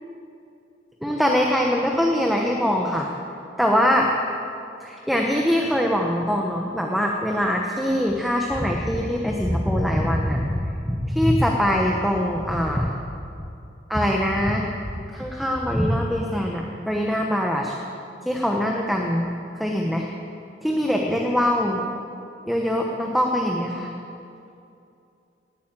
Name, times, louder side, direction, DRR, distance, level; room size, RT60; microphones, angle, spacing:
voice 1, 1.0-3.1 3.6-4.1 4.8-12.9 13.9-14.7 15.1-17.7 18.3-19.3 19.6-20.1 20.6-21.8 22.5-23.9, equal, ahead, 0 dB, 1.0 m, -23 dB
18.5 x 9.2 x 7.5 m, 2.6 s
head